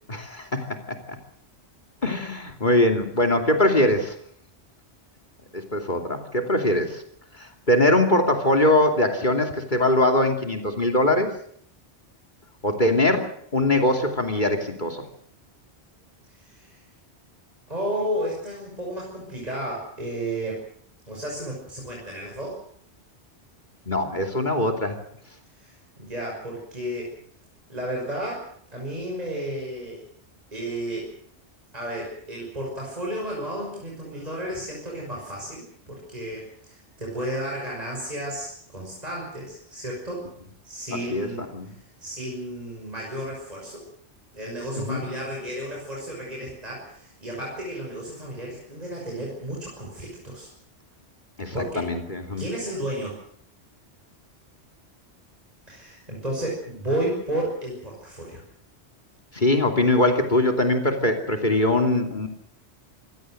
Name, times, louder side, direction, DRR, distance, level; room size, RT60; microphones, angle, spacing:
voice 1, 0.1-1.2 2.0-4.2 5.5-7.0 7.4-11.3 12.6-15.0 23.9-25.0 41.1-41.7 44.8-45.0 51.4-52.5 59.3-62.3, left 1 dB, 45° left, 4 dB, 3.0 m, -22 dB
voice 2, 16.4-16.8 17.7-20.6 21.1-22.6 25.5-27.1 27.7-30.0 30.5-31.1 31.7-40.3 40.6-43.9 44.3-50.5 51.5-52.0 52.4-53.2 55.7-58.4, right 1 dB, 35° right, -2 dB, 6.3 m, -32 dB
25.0 x 17.0 x 7.7 m, 0.63 s
omnidirectional pair, 1.2 m